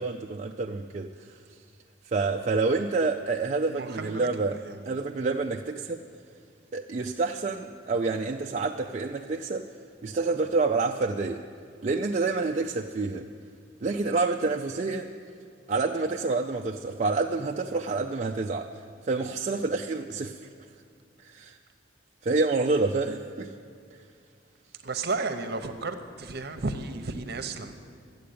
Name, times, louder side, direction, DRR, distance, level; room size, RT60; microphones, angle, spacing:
voice 1, 0.0-1.4 2.0-4.6 4.9-6.0 6.7-9.7 10.0-11.4 11.8-13.3 13.8-15.1 15.7-18.7 19.0-20.4 21.2-21.6 22.2-23.5, right 3 dB, 35° right, 2 dB, 0.4 m, -28 dB
voice 2, 3.7-5.0 24.8-27.7, right 3 dB, 55° right, 8 dB, 0.9 m, -33 dB
13.0 x 8.5 x 8.5 m, 2.4 s
head